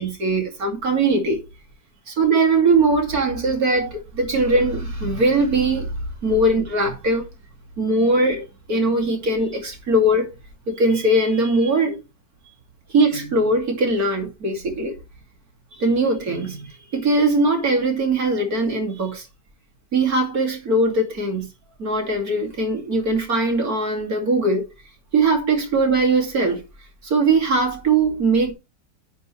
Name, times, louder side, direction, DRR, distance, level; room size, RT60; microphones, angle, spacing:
voice 1, 0.0-1.4 2.1-7.3 7.8-10.3 10.7-12.0 12.9-15.0 15.7-19.3 19.9-21.4 21.8-24.7 25.1-26.6 27.0-28.5, right 2 dB, 55° right, 3.1 m, -20 dB
11.0 x 6.9 x 3.3 m
omnidirectional pair, 1.9 m